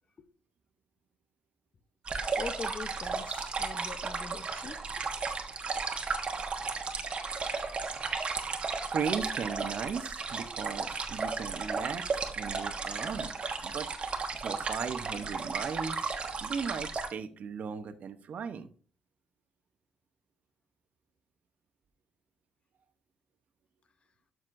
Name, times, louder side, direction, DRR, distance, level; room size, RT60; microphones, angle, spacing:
sound 1, 2.1-17.1, right 4 dB, 40° right, 1.2 m, -34 dB
voice 1, 2.3-5.0, left 5 dB, 40° left, 0.8 m, -43 dB
voice 2, 7.9-12.1 12.4-13.3 13.6-13.9 14.4-16.1 16.4-18.7, right 6 dB, 60° right, 0.8 m, -37 dB
12.0 x 6.2 x 2.6 m
cardioid pair, 100°, 3 cm